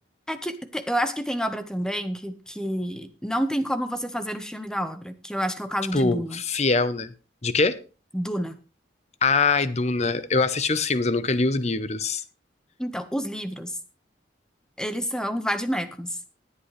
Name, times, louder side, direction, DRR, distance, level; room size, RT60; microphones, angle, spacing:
voice 1, 0.3-6.4 8.1-8.6 12.8-13.8 14.8-16.2, equal, 5° left, 0.9 m, -29 dB
voice 2, 5.9-7.1 7.4-7.8 9.2-12.2, left 3 dB, 35° left, 0.8 m, -23 dB
20.0 x 8.5 x 3.3 m
head